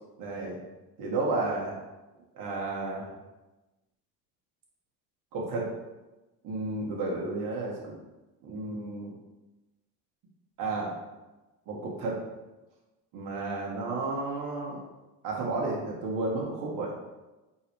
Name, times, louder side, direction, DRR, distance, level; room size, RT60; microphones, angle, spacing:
voice 1, 0.2-0.6 1.0-1.8 2.3-3.1 5.3-5.7 6.4-7.9 8.4-9.1 10.6-10.9 11.7-12.2 13.1-14.8 15.2-16.9, right 2 dB, 60° right, -2 dB, 1.4 m, -32 dB
3.9 x 2.9 x 4.5 m, 1.1 s
cardioid pair, 140°, 36 cm